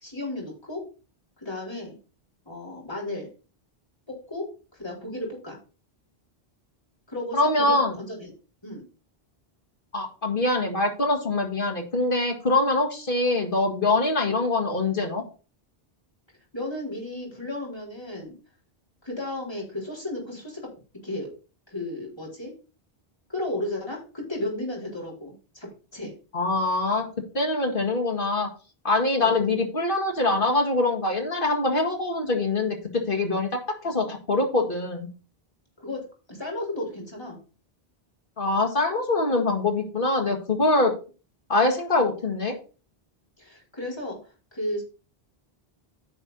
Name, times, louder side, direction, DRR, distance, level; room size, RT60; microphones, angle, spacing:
voice 1, 0.0-0.8 1.4-1.9 2.5-3.3 4.1-5.6 7.1-8.3 8.6-8.8 16.5-18.3 19.0-20.6 21.0-21.3 21.7-22.5 23.3-26.1 29.2-29.4 35.8-36.0 36.3-37.4 43.4-44.8, left 1 dB, 25° left, -4 dB, 4.0 m, -34 dB
voice 2, 7.3-8.0 9.9-15.2 26.3-27.0 27.3-28.5 28.8-35.1 38.4-40.9 41.5-42.5, left 2 dB, 55° left, 3 dB, 2.1 m, -24 dB
9.9 x 5.5 x 4.1 m, 0.35 s
omnidirectional pair, 1.0 m